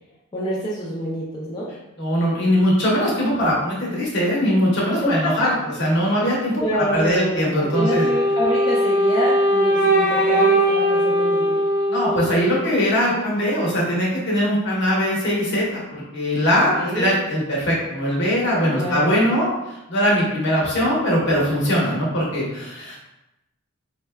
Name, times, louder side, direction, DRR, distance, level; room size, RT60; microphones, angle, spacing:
voice 1, 0.3-1.7 5.0-5.5 6.6-11.6 16.8-17.2 18.7-19.1, equal, 20° left, -7 dB, 0.4 m, -26 dB
voice 2, 2.0-8.1 11.9-23.0, equal, 60° left, -5 dB, 1.0 m, -21 dB
Wind instrument woodwind instrument, 7.7-12.8, right 1 dB, 45° right, 0.7 m, -20 dB
4.1 x 2.2 x 2.2 m, 0.92 s
head